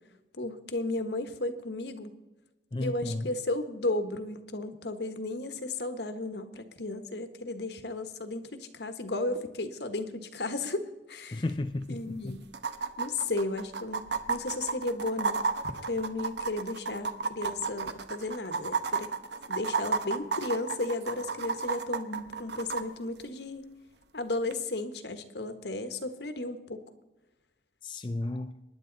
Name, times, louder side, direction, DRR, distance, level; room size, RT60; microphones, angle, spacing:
voice 1, 0.3-2.1 2.8-11.4 11.9-12.4 13.0-15.5 15.9-19.1 19.5-23.6 24.1-26.8, left 2 dB, 70° left, 8 dB, 1.4 m, -34 dB
voice 2, 2.7-3.3 11.3-12.4 27.8-28.5, left 2 dB, 25° left, 7 dB, 0.5 m, -33 dB
sound 1, 11.5-11.6 11.8-11.9 12.5-22.8 24.5-24.6, right 5 dB, 70° right, 1.0 m, -32 dB
24.0 x 10.5 x 4.0 m, 1.1 s
head